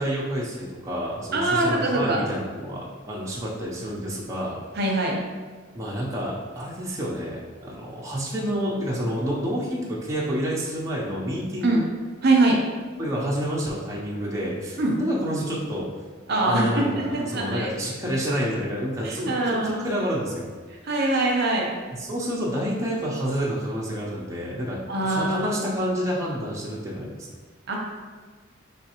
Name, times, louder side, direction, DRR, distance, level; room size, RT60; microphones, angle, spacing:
voice 1, 0.0-4.6 5.7-11.8 13.0-15.9 16.3-20.4 22.0-27.3, equal, 15° right, -6 dB, 0.7 m, -29 dB
voice 2, 1.3-2.3 4.8-5.1 11.6-11.8 12.2-12.6 14.8-15.0 16.3-17.7 19.0-19.8 20.8-21.7 24.9-25.5 27.7-27.8, right 2 dB, 55° right, -1 dB, 0.8 m, -23 dB
5.1 x 3.2 x 3.0 m, 1.4 s
head